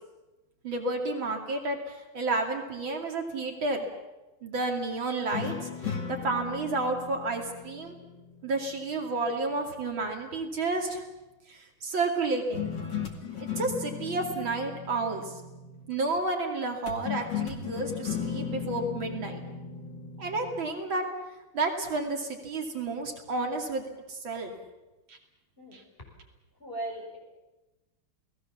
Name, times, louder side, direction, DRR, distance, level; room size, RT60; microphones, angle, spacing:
voice 1, 0.6-3.8 4.4-7.9 8.4-11.0 11.5-12.7 13.4-15.4 15.9-19.4 20.2-21.0 21.5-24.5 25.1-25.2 25.7-25.8, right 3 dB, 70° right, 3 dB, 3.3 m, -31 dB
sound 1, 5.3-8.7 12.5-15.9 16.9-20.7, left 7 dB, 60° left, 2.9 m, -36 dB
voice 2, 26.6-27.2, right 1 dB, 25° left, -1 dB, 6.6 m, -37 dB
29.0 x 19.0 x 7.2 m, 1.0 s
omnidirectional pair, 2.2 m